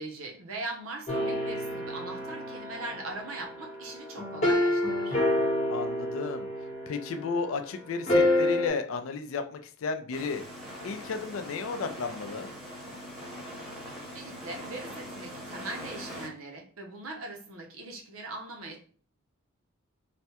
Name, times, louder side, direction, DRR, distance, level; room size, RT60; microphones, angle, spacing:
voice 1, 0.0-5.2 14.1-18.8, right 2 dB, 70° right, 2 dB, 0.7 m, -40 dB
sound 1, 1.1-7.3 8.1-8.7, left 1 dB, 30° left, 0.9 m, -28 dB
voice 2, 5.7-6.5 6.9-10.4 10.8-12.5, left 4 dB, 65° left, 7 dB, 0.4 m, -33 dB
sound 2, 10.1-16.3, equal, ahead, 0.8 m, -42 dB
3.2 x 2.2 x 2.8 m, 0.43 s
head